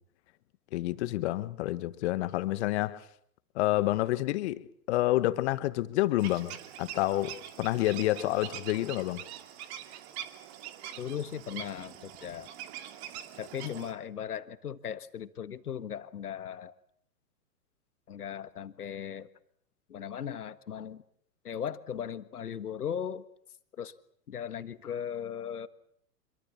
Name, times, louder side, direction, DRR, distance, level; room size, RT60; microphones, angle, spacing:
voice 1, 0.7-3.0 3.5-9.2 13.6-13.7, left 16 dB, 45° left, 1.5 m, -29 dB
sound 1, 6.2-13.9, right 10 dB, 45° right, 2.7 m, -44 dB
voice 2, 11.0-12.5 13.4-16.7 18.1-19.3 19.9-21.0 21.4-23.2 23.8-23.9 24.3-25.7, left 8 dB, 75° left, 1.7 m, -37 dB
26.5 x 23.5 x 7.2 m
hypercardioid pair, 115°, 46 cm